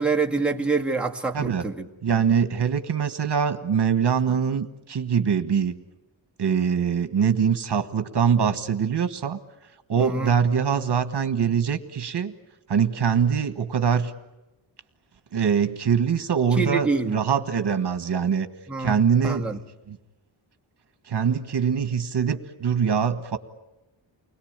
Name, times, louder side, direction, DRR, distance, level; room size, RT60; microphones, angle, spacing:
voice 1, 0.0-1.9 10.0-10.3 16.6-17.2 18.7-19.0 19.2-19.6, right 4 dB, 5° right, 1.7 m, -26 dB
voice 2, 2.0-5.7 6.4-9.4 9.9-12.3 12.7-14.1 15.3-18.5 18.8-19.6 19.9-20.0 21.1-23.4, right 7 dB, 60° right, 1.5 m, -23 dB
29.5 x 21.5 x 8.9 m
wide cardioid pair, 145°, 46 cm